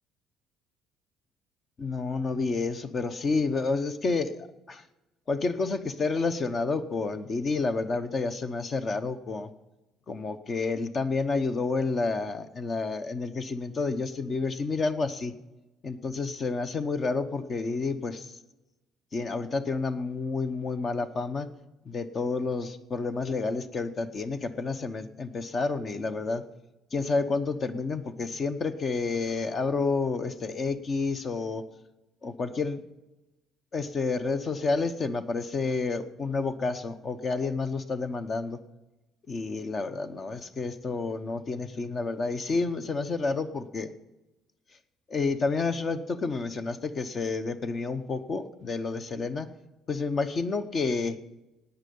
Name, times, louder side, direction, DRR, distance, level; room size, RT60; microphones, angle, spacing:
voice 1, 1.8-4.8 5.3-9.5 10.1-15.3 15.8-18.4 19.1-21.5 21.9-26.4 26.9-31.6 32.2-32.8 33.7-38.6 39.3-43.9 45.1-49.5 49.9-51.2, left 4 dB, 30° left, 10 dB, 0.8 m, -30 dB
17.0 x 9.4 x 5.3 m, 1.0 s
cardioid pair, 145°, 0 cm